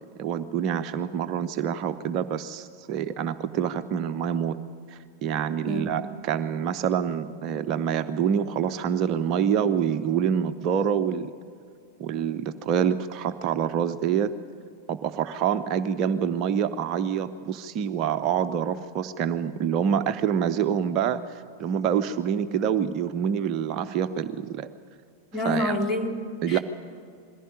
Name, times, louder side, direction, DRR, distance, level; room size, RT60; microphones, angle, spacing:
voice 1, 0.2-4.6 4.9-11.3 12.0-14.3 14.9-24.7 25.4-25.8 26.4-26.6, right 8 dB, 40° right, 9 dB, 0.7 m, -26 dB
voice 2, 25.3-26.6, left 1 dB, 20° left, 2 dB, 2.7 m, -28 dB
21.5 x 16.0 x 9.9 m, 2.4 s
figure-of-eight pair, 90°, 0 cm